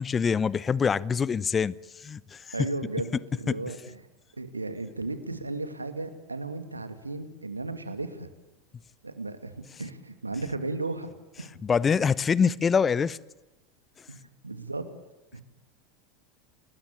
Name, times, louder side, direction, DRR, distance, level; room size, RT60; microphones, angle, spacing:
voice 1, 0.0-1.7 2.0-2.7 3.5-3.6 11.6-13.2, left 6 dB, 20° left, 0.8 m, -25 dB
voice 2, 2.5-4.0 4.4-8.3 9.0-9.5 9.8-11.1 11.4-11.5 14.1-14.2 14.4-14.9 15.3-15.4, right 3 dB, 80° right, 2.4 m, -35 dB
29.0 x 20.5 x 8.7 m
figure-of-eight pair, 80°, 0 cm